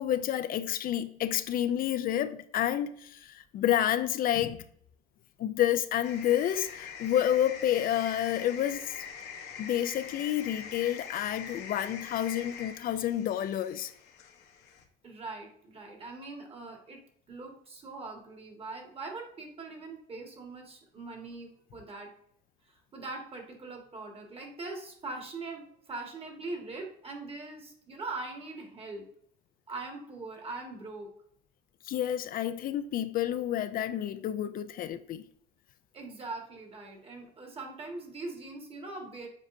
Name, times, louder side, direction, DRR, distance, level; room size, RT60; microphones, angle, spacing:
voice 1, 0.0-4.6 5.4-8.9 9.6-13.9 31.9-35.2, left 11 dB, 60° left, 0.4 m, -29 dB
sound 1, 6.0-14.8, left 6 dB, 75° left, 1.0 m, -44 dB
voice 2, 15.0-17.0 17.3-22.1 22.7-29.0 29.7-31.1 35.9-39.3, right 3 dB, 35° right, 1.7 m, -41 dB
7.5 x 4.8 x 2.6 m
cardioid pair, 110°, 17 cm